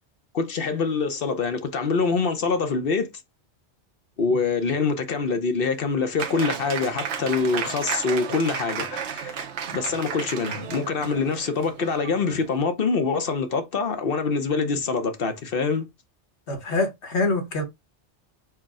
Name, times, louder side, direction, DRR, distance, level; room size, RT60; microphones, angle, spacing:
voice 1, 0.3-3.1 4.2-15.9, left 4 dB, 60° left, 0.9 m, -25 dB
Applause, 6.2-12.6, right 7 dB, 75° right, 0.9 m, -33 dB
voice 2, 16.5-17.6, left 2 dB, 75° left, 1.5 m, -25 dB
4.7 x 2.2 x 4.7 m
omnidirectional pair, 1.2 m